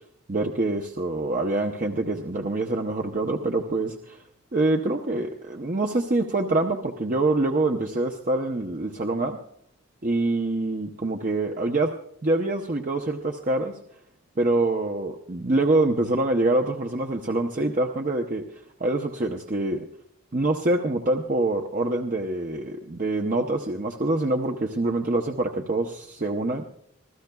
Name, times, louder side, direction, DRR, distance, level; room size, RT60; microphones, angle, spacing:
voice 1, 0.3-4.2 4.5-9.4 10.0-11.9 12.2-13.8 14.4-18.4 18.8-19.9 20.3-26.6, right 2 dB, 40° right, 2 dB, 0.7 m, -25 dB
25.0 x 15.0 x 2.3 m, 0.66 s
head